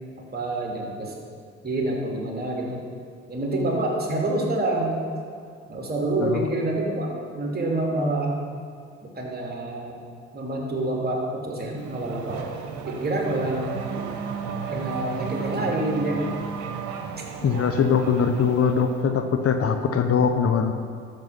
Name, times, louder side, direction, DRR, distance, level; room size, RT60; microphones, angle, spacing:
voice 1, 0.3-1.1 1.6-2.8 3.3-5.0 5.7-8.4 9.0-9.9 10.3-12.5 12.7-13.7 14.7-16.3, right 2 dB, 30° right, -1 dB, 3.1 m, -27 dB
Race car auto racing / Accelerating revving vroom, 11.8-19.0, right 6 dB, 70° right, 1.2 m, -34 dB
voice 2, 17.4-20.7, left 6 dB, 50° left, 6 dB, 0.9 m, -22 dB
13.0 x 7.4 x 5.7 m, 2.1 s
hypercardioid pair, 50°, 31 cm